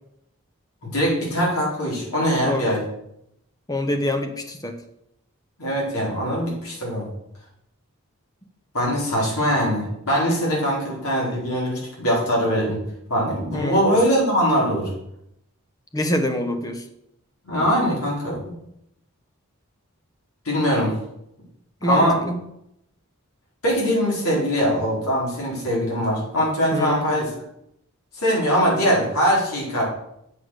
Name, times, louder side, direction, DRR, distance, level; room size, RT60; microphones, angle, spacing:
voice 1, 0.8-2.8 5.6-7.1 8.7-12.8 13.1-14.9 17.4-18.5 20.4-21.0 21.8-22.2 23.6-27.3 28.1-29.8, equal, 85° left, -4 dB, 4.3 m, -22 dB
voice 2, 3.7-4.8 13.5-13.9 15.9-16.8 21.8-22.4 26.7-27.0, left 1 dB, 15° left, 7 dB, 0.9 m, -25 dB
8.0 x 6.0 x 6.5 m, 0.79 s
head